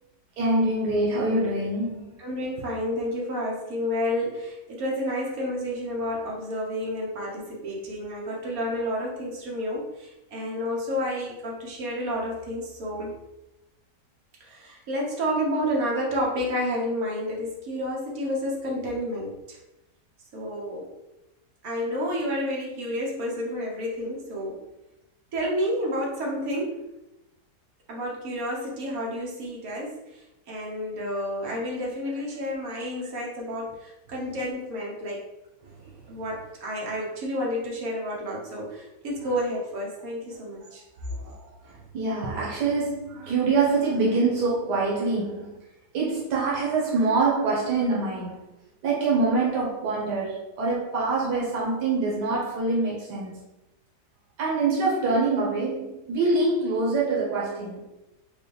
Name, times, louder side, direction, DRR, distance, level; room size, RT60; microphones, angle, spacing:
voice 1, 0.4-2.1 35.6-36.1 40.6-40.7 41.0-45.5 45.9-48.5 48.8-53.3 54.4-57.8, right 3 dB, 85° right, -4 dB, 1.5 m, -25 dB
voice 2, 2.2-13.2 14.4-19.6 20.3-20.9 21.6-24.6 25.3-26.8 27.9-35.2 36.1-40.8, equal, 60° right, -3 dB, 1.4 m, -30 dB
5.1 x 2.3 x 3.3 m, 0.96 s
omnidirectional pair, 1.8 m